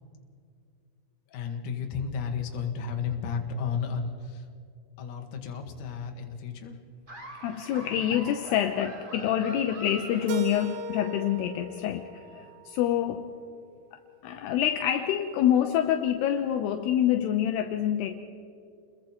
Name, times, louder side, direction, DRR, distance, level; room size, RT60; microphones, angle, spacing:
voice 1, 1.3-4.5 5.0-6.8, left 6 dB, 60° left, 3 dB, 2.4 m, -33 dB
Laughter, 7.1-11.1, right 1 dB, 15° right, 1.7 m, -44 dB
voice 2, 7.4-13.2 13.9-18.2, left 10 dB, 80° left, 6 dB, 2.3 m, -27 dB
Keyboard (musical), 10.3-13.2, right 4 dB, 70° right, 3.0 m, -38 dB
30.0 x 21.5 x 4.4 m, 2.4 s
omnidirectional pair, 5.6 m